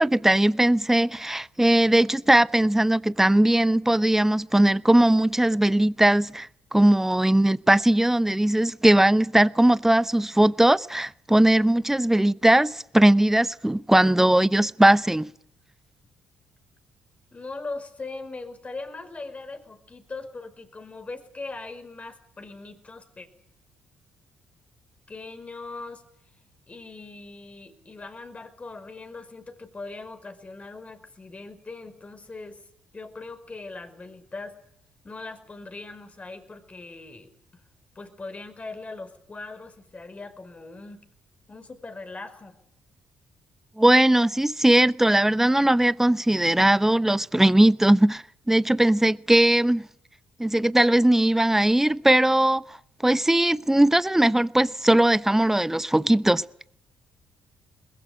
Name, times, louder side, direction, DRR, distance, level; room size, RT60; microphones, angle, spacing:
voice 1, 0.0-15.3 43.8-49.9 50.4-52.8 53.0-56.4, right 1 dB, 10° right, 0.9 m, -19 dB
voice 2, 17.3-23.3 25.1-26.0 26.7-32.6 32.9-34.6 35.0-37.3 37.9-41.0 41.5-42.5, left 3 dB, 30° left, 4.9 m, -40 dB
23.0 x 21.0 x 8.0 m
hypercardioid pair, 50°, 4 cm